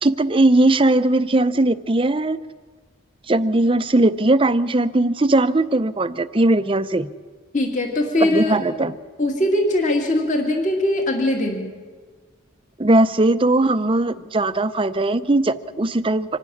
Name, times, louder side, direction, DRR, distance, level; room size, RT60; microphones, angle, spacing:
voice 1, 0.0-2.4 3.3-7.1 8.2-8.9 12.8-16.4, right 2 dB, 25° right, 12 dB, 0.6 m, -19 dB
voice 2, 7.5-8.6 9.2-11.7, left 1 dB, 40° left, 1 dB, 2.3 m, -21 dB
25.5 x 12.0 x 9.9 m, 1.5 s
head